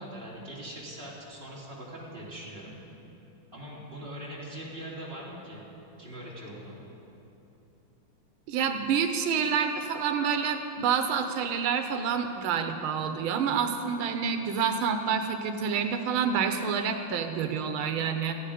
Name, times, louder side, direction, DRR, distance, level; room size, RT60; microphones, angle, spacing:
voice 1, 0.0-2.8 3.5-5.6 6.0-6.8, right 1 dB, 25° right, -6 dB, 3.3 m, -41 dB
voice 2, 8.5-18.3, right 6 dB, 90° right, 7 dB, 1.7 m, -28 dB
18.0 x 15.0 x 5.0 m, 3.0 s
omnidirectional pair, 2.3 m